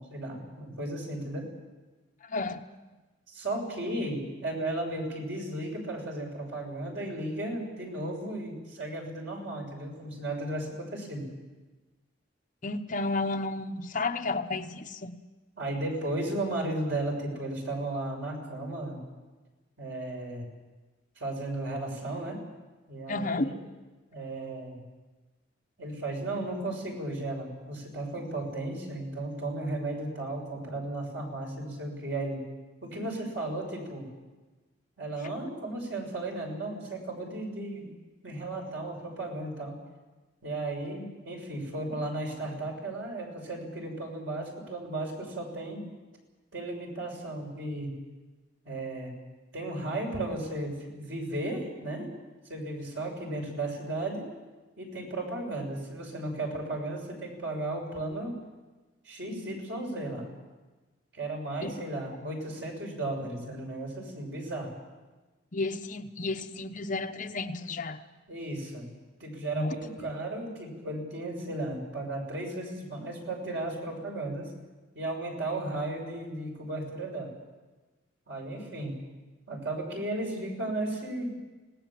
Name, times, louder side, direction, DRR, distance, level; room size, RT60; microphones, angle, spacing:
voice 1, 0.0-1.5 3.3-11.3 15.6-19.0 19.8-20.4 21.2-22.4 22.9-23.5 24.1-24.8 25.8-32.4 32.8-34.1 35.0-37.9 38.2-39.8 40.4-45.8 46.5-48.0 48.7-49.1 49.5-52.1 52.5-54.2 54.8-58.3 59.1-60.3 61.1-64.7 68.3-68.9 69.2-74.5 74.9-77.3 78.3-79.0 79.5-81.3, right 2 dB, 70° right, 1 dB, 6.8 m, -35 dB
voice 2, 2.2-2.6 12.6-15.2 23.1-23.5 61.6-61.8 65.5-68.0 69.5-69.7, left 3 dB, 45° left, 7 dB, 1.0 m, -32 dB
27.0 x 18.5 x 7.6 m, 1.2 s
head